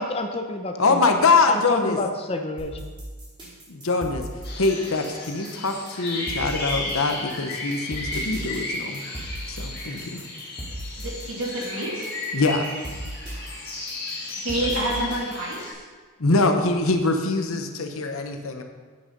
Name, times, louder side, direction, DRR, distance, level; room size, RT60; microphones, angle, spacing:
voice 1, 0.0-1.0 1.5-2.7, left 2 dB, 25° left, 5 dB, 0.6 m, -28 dB
voice 2, 0.8-2.0 3.7-4.2 4.6-9.0 9.5-10.2 12.3-12.7 16.2-18.6, left 3 dB, 75° left, 5 dB, 0.9 m, -23 dB
sound 1, 2.6-15.7, right 1 dB, 20° right, 2.4 m, -37 dB
sound 2, 4.4-15.7, left 2 dB, 45° left, 2.3 m, -34 dB
voice 3, 11.0-12.1 14.3-15.7, right 1 dB, 65° right, -3 dB, 2.5 m, -28 dB
8.8 x 6.4 x 5.3 m, 1.5 s
head